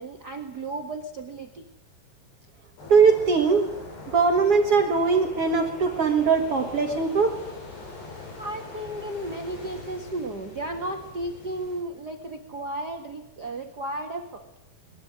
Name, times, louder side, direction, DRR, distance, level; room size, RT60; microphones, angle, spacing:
voice 1, 0.0-1.7 7.2-7.3 8.4-14.5, right 1 dB, 75° right, 5 dB, 0.9 m, -34 dB
sound 1, 2.8-11.8, left 3 dB, 80° left, 8.4 m, -42 dB
voice 2, 2.9-3.7 4.1-7.3, right 5 dB, 50° right, 5 dB, 1.8 m, -20 dB
21.0 x 21.0 x 9.9 m, 0.85 s
omnidirectional pair, 4.7 m